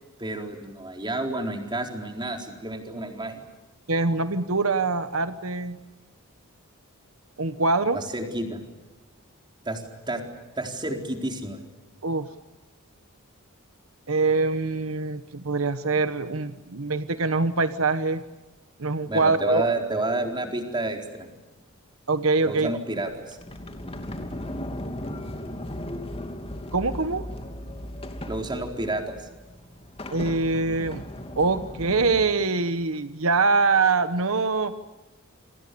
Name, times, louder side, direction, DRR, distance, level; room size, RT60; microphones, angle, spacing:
voice 1, 0.2-3.4 7.9-8.6 9.7-10.2 10.6-11.6 19.1-21.3 22.4-23.4 28.2-29.1, right 2 dB, 20° right, 3 dB, 4.2 m, -30 dB
voice 2, 3.9-5.8 7.4-8.0 12.0-12.3 14.1-18.2 18.8-19.6 22.1-22.7 26.7-27.3 30.1-31.0 31.4-34.7, right 3 dB, 70° right, 11 dB, 1.2 m, -24 dB
Sliding door, 23.0-32.2, left 1 dB, 30° left, 2.9 m, -37 dB
29.0 x 25.5 x 6.9 m, 1.2 s
head